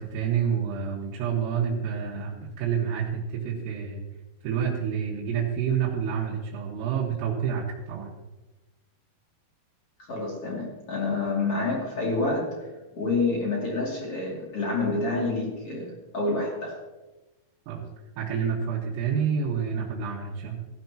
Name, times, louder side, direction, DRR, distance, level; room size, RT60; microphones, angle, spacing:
voice 1, 0.0-4.0 4.4-8.1 17.7-17.8 18.2-20.7, right 7 dB, 85° right, -5 dB, 4.3 m, -28 dB
voice 2, 10.1-12.7 12.9-16.8, left 3 dB, 35° left, -3 dB, 2.8 m, -28 dB
17.5 x 14.0 x 3.0 m, 1.1 s
omnidirectional pair, 5.8 m